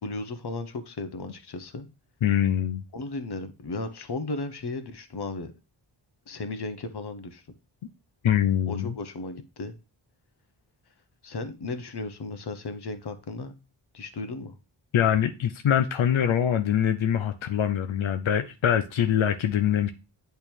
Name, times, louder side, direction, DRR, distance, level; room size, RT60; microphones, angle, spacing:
voice 1, 0.0-1.9 2.9-5.5 6.3-7.4 8.7-9.7 11.2-13.5 13.9-14.5, left 3 dB, 55° left, 9 dB, 1.0 m, -35 dB
voice 2, 2.2-2.8 8.2-8.9 14.9-19.9, left 9 dB, 90° left, 8 dB, 0.6 m, -24 dB
8.8 x 3.4 x 4.4 m, 0.29 s
wide cardioid pair, 95°, 46 cm